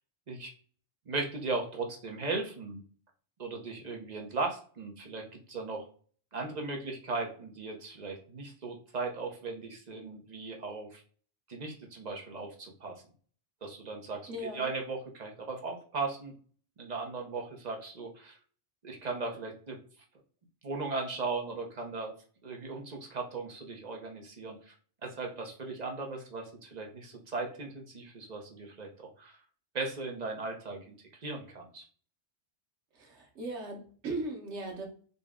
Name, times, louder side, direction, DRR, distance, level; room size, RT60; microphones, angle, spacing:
voice 1, 1.1-2.8 3.4-5.9 6.3-11.0 11.5-13.0 13.6-16.3 16.8-18.4 18.8-19.8 20.6-22.1 22.4-24.7 25.0-28.9 29.2-29.4 29.7-30.9 31.2-31.9, right 3 dB, 40° right, 2 dB, 0.8 m, -37 dB
voice 2, 14.3-14.7 32.9-34.9, right 2 dB, 85° right, 2 dB, 1.3 m, -38 dB
3.9 x 2.2 x 3.5 m, 0.43 s
omnidirectional pair, 1.1 m